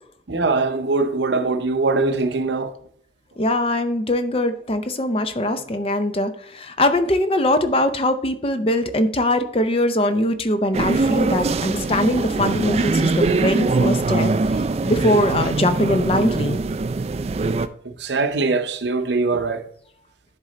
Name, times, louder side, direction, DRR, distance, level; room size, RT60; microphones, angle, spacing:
voice 1, 0.3-2.7 18.0-19.6, right 3 dB, 75° right, 0.7 m, -22 dB
voice 2, 3.4-14.6 14.9-16.6, left 1 dB, 30° left, 0.5 m, -21 dB
sound 1, 10.7-17.7, right 3 dB, 35° right, 0.3 m, -22 dB
10.5 x 3.8 x 4.2 m
head